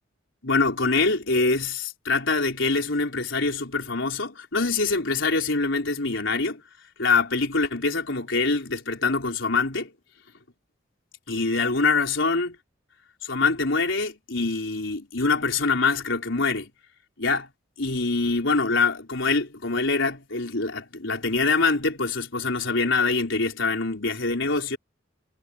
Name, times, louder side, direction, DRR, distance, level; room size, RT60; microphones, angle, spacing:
voice 1, 0.4-6.6 7.0-9.9 11.3-12.6 13.2-16.7 17.2-17.5 17.8-24.8, left 3 dB, 70° left, 4.5 m, -24 dB
head